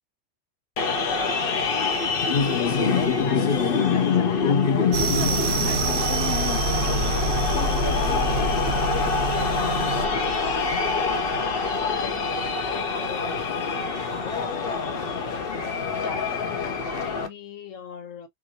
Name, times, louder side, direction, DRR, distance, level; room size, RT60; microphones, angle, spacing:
sound 1, 0.8-17.3, left 5 dB, 55° left, 0.8 m, -25 dB
voice 1, 2.6-10.3 10.7-15.2 15.9-18.3, left 6 dB, 85° left, 1.2 m, -39 dB
sound 2, 4.9-12.4, right 2 dB, 65° right, 0.9 m, -27 dB
3.0 x 2.2 x 2.5 m
omnidirectional pair, 1.3 m